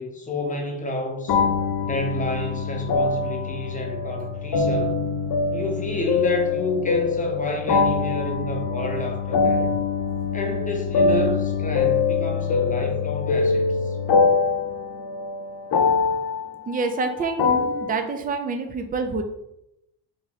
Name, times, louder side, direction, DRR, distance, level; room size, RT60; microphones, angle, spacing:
voice 1, 0.0-1.4 1.8-5.0 5.5-9.7 10.3-14.0, left 1 dB, 15° left, 2 dB, 0.7 m, -30 dB
sound 1, 1.3-17.9, left 5 dB, 55° left, 0.7 m, -23 dB
voice 2, 16.7-19.2, right 4 dB, 20° right, 6 dB, 0.4 m, -27 dB
3.6 x 3.0 x 4.1 m, 0.83 s
cardioid pair, 125°, 45 cm